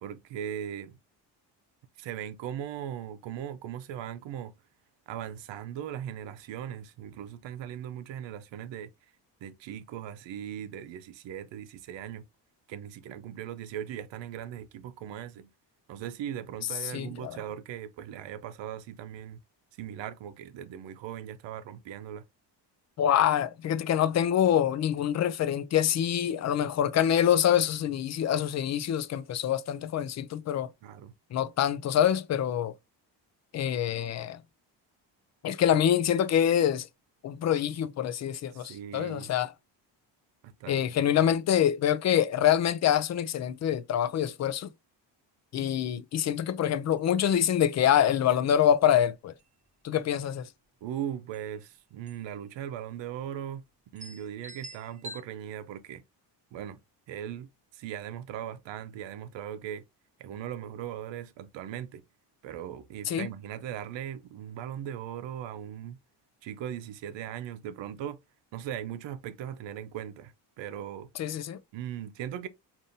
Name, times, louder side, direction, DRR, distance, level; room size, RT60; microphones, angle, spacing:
voice 1, 0.0-1.0 2.0-4.5 5.1-8.9 9.4-12.2 12.7-15.5 15.9-19.4 19.8-22.2 30.8-31.1 38.5-39.3 40.4-40.8 50.8-53.6 53.9-56.0 56.5-56.8 57.1-59.8 60.2-62.0 62.4-66.0 66.4-68.2 68.5-71.3 71.7-72.5, right 10 dB, 75° right, 0.7 m, -39 dB
voice 2, 16.9-17.4 23.0-30.7 31.3-32.7 33.5-34.4 35.4-36.9 37.2-39.5 40.7-44.7 45.5-49.3 49.8-50.5 63.1-63.3 71.2-71.6, left 10 dB, 40° left, 0.4 m, -25 dB
sound 1, 47.0-47.1 47.3-47.4 47.8-48.2 48.7-48.9 49.3-49.9 51.0-51.1 51.3-51.5 52.1-52.4 52.6-52.7 53.4-53.5 54.0-55.2, right 1 dB, 15° right, 0.5 m, -46 dB
5.2 x 2.6 x 2.6 m
cardioid pair, 120°, 44 cm